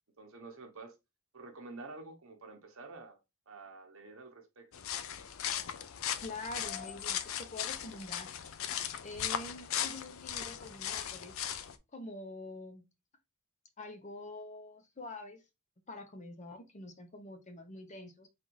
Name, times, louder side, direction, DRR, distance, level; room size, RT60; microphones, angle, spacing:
voice 1, 0.2-0.9 1.3-3.2 3.5-4.7, right 3 dB, 65° right, 1.0 m, -49 dB
sound 1, 4.7-11.8, left 9 dB, 65° left, 0.5 m, -38 dB
voice 2, 6.2-8.3 9.0-11.4 11.9-12.8 13.8-15.4 15.9-18.3, left 2 dB, 35° left, 0.8 m, -45 dB
4.0 x 2.6 x 4.6 m
head